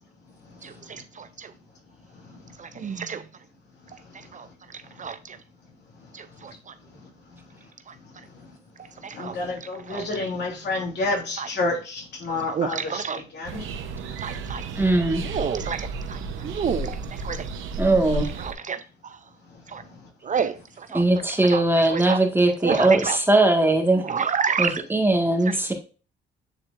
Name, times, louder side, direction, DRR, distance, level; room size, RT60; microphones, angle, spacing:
voice 1, 0.6-1.5 2.6-3.2 4.3-4.5 4.7-5.4 6.1-6.7 7.9-8.0 8.8-9.4 9.9-10.2 11.4-11.5 12.5-13.2 14.2-14.7 15.2-17.5 17.8-17.9 18.4-19.2 19.7-19.8 20.2-21.0 21.4-21.6 21.9-22.2 22.6-23.2 24.0-24.8 25.5-25.7, right 6 dB, 40° right, 0.5 m, -30 dB
voice 2, 9.1-13.6, left 2 dB, 60° left, 2.9 m, -29 dB
sound 1, 13.5-18.5, right 3 dB, 85° right, 1.0 m, -33 dB
voice 3, 14.7-15.2 17.8-18.2 20.9-24.0 24.6-25.7, right 2 dB, 10° right, 1.7 m, -20 dB
8.9 x 4.3 x 2.5 m
cardioid pair, 90°, 20 cm